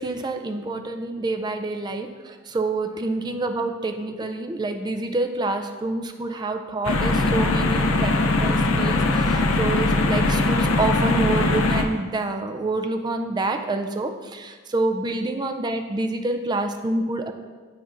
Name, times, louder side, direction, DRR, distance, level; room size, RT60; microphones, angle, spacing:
voice 1, 0.0-17.3, right 2 dB, 20° right, 6 dB, 0.3 m, -27 dB
sound 1, 6.8-11.8, left 2 dB, 75° left, 0.5 m, -21 dB
9.3 x 4.3 x 2.5 m, 1.4 s
head